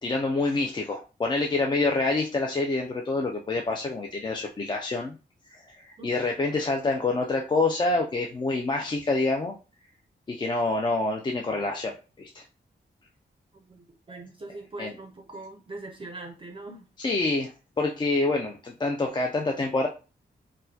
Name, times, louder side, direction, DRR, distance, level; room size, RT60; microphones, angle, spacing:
voice 1, 0.0-5.1 5.5-9.5 10.3-12.4 14.8-14.9 17.0-17.5 17.8-19.9, left 3 dB, 25° left, 0.4 m, -27 dB
voice 2, 13.5-16.9, right 2 dB, 30° right, 0.5 m, -42 dB
4.2 x 2.1 x 2.6 m
wide cardioid pair, 170°, 18 cm